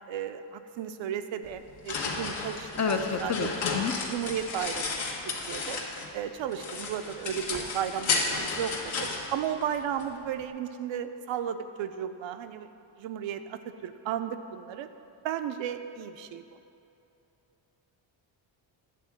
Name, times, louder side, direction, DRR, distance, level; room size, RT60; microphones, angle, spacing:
voice 1, 0.1-3.5 4.1-5.8 6.1-12.7 13.0-14.9 15.2-16.4, right 9 dB, 65° right, 9 dB, 0.6 m, -34 dB
sound 1, 1.4-6.2 6.5-10.1, left 4 dB, 70° left, 1.3 m, -33 dB
voice 2, 2.8-3.9, left 5 dB, 35° left, 5 dB, 0.5 m, -29 dB
10.0 x 3.6 x 7.3 m, 2.8 s
cardioid pair, 120°, 50 cm